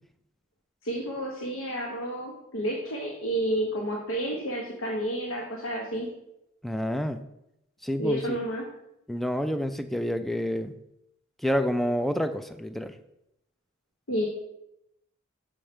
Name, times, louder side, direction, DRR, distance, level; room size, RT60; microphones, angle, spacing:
voice 1, 0.8-6.1 8.0-8.7 14.1-14.3, right 1 dB, 75° left, -2 dB, 1.0 m, -30 dB
voice 2, 6.6-7.2 7.8-8.4 9.1-10.7 11.4-13.0, equal, ahead, 9 dB, 0.3 m, -28 dB
6.3 x 5.2 x 4.4 m, 0.84 s
head